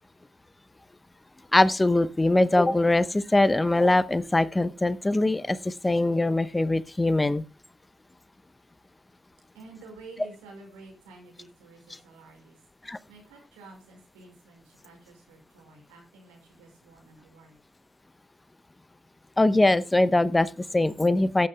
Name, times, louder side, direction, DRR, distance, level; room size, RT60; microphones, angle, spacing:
voice 1, 1.5-7.4 12.8-13.0 19.4-21.5, left 2 dB, 20° left, 17 dB, 0.8 m, -22 dB
voice 2, 9.5-12.6 13.1-17.6, right 3 dB, 80° right, 1 dB, 5.2 m, -50 dB
18.5 x 9.2 x 2.2 m, 0.29 s
hypercardioid pair, 45°, 0 cm